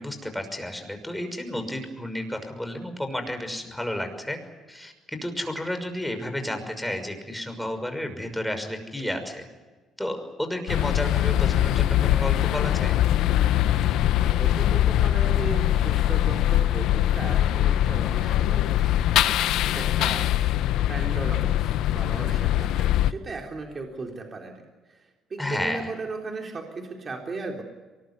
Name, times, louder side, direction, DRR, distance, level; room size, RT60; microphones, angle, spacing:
voice 1, 0.0-4.4 4.7-9.5 10.0-13.0 25.4-25.9, left 1 dB, 5° left, 6 dB, 6.0 m, -32 dB
sound 1, 10.7-23.1, left 12 dB, 80° left, 0.8 m, -22 dB
voice 2, 14.2-19.0 19.7-20.3 20.9-24.6 24.9-27.6, right 3 dB, 35° right, 2 dB, 3.7 m, -36 dB
23.5 x 20.5 x 9.7 m, 1.3 s
cardioid pair, 90°, 0 cm